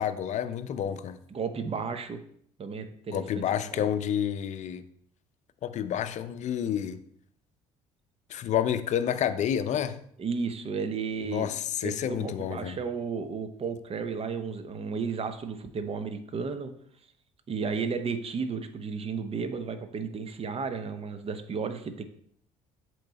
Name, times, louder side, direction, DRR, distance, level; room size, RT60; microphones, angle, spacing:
voice 1, 0.0-1.2 3.1-4.8 5.6-7.0 8.3-10.0 11.2-12.8, left 9 dB, 45° left, 0.5 m, -29 dB
voice 2, 1.3-2.2 2.6-3.4 3.7-3.9 10.2-11.5 11.8-16.7 17.5-22.0, right 5 dB, 35° right, 0.8 m, -33 dB
7.8 x 3.1 x 4.0 m
hypercardioid pair, 60°, 16 cm